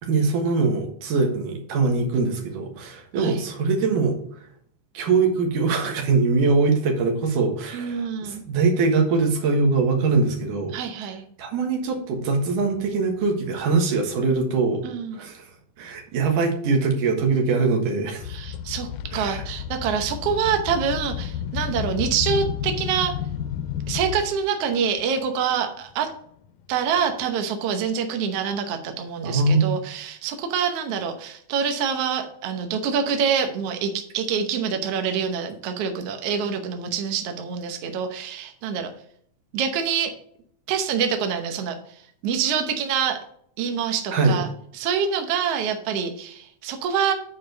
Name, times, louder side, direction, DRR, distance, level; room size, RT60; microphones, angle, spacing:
voice 1, 0.0-4.2 4.9-10.8 11.4-14.8 15.1-15.4 15.8-18.2 19.1-19.4 29.2-29.8 44.1-44.4, right 4 dB, 90° right, 2 dB, 3.0 m, -22 dB
voice 2, 7.7-8.4 10.7-11.2 14.8-15.2 18.3-18.9 19.1-23.1 23.9-26.1 26.7-38.9 39.5-40.1 40.7-41.8 42.2-43.2 43.6-44.5 44.7-47.1, right 7 dB, 65° right, 5 dB, 1.7 m, -26 dB
sound 1, 18.2-24.4 25.0-25.2 26.1-26.2 27.0-27.1, left 9 dB, 80° left, 2.0 m, -31 dB
8.6 x 4.6 x 5.2 m, 0.65 s
omnidirectional pair, 3.6 m